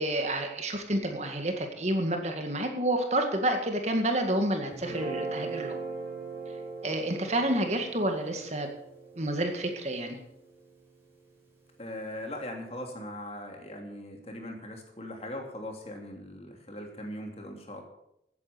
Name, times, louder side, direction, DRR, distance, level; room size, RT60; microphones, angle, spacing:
voice 1, 0.0-5.7 6.8-8.7 9.2-10.2, right 1 dB, 40° right, 4 dB, 2.0 m, -29 dB
Guitar, 4.7-11.0, right 4 dB, 15° right, 5.9 m, -40 dB
voice 2, 11.8-17.8, left 1 dB, 35° left, 2 dB, 2.8 m, -40 dB
15.5 x 9.5 x 7.0 m, 0.81 s
head